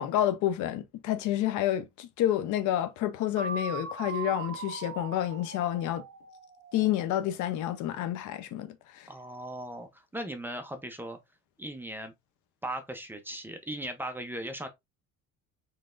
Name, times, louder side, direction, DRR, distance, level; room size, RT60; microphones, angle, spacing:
voice 1, 0.0-6.0 6.7-9.1, left 12 dB, 75° left, 0.7 m, -29 dB
sound 1, 3.4-7.2, right 5 dB, 35° right, 0.9 m, -40 dB
voice 2, 9.1-11.2 11.6-12.1 12.6-14.7, right 1 dB, 5° right, 0.6 m, -38 dB
3.9 x 3.3 x 2.5 m
cardioid pair, 130°, 30 cm